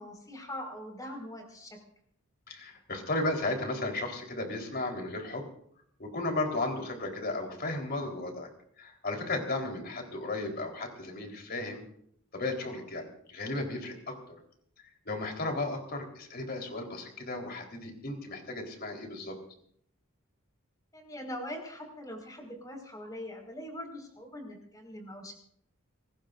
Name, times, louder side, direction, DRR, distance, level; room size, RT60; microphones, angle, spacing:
voice 1, 0.0-1.8 12.6-12.8 20.9-25.3, left 1 dB, 15° left, 2 dB, 5.1 m, -42 dB
voice 2, 2.5-5.5 6.0-8.5 8.8-11.8 12.3-14.2 15.1-19.4, left 2 dB, 45° left, 2 dB, 4.0 m, -34 dB
25.0 x 20.5 x 2.6 m, 0.66 s
head